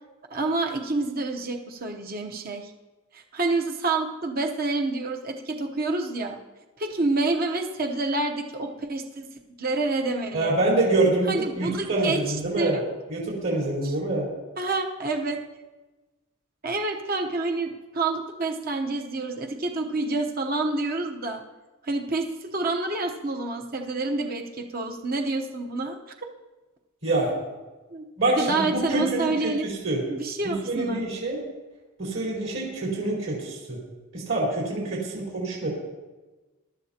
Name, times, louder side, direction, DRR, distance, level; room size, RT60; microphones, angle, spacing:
voice 1, 0.3-2.7 3.1-6.4 6.8-9.3 9.6-10.6 11.3-12.8 13.8-13.9 14.6-15.4 16.6-21.4 21.8-26.0 27.9-29.7 30.1-31.1, right 3 dB, 45° right, 3 dB, 0.9 m, -28 dB
voice 2, 10.3-11.3 11.6-12.8 13.1-14.3 27.0-27.3 28.2-30.0 30.4-31.4 32.0-33.8 34.1-35.7, right 2 dB, 65° right, -5 dB, 4.4 m, -26 dB
22.5 x 12.0 x 2.9 m, 1.2 s
head